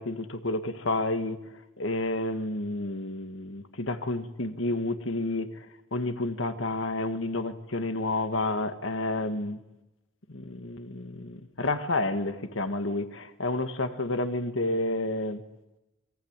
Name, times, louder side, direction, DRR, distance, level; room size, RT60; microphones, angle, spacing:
voice 1, 0.0-1.4 1.8-5.5 5.9-9.6 10.3-15.4, left 2 dB, 70° left, 9 dB, 1.8 m, -30 dB
28.0 x 22.5 x 9.0 m, 1.0 s
head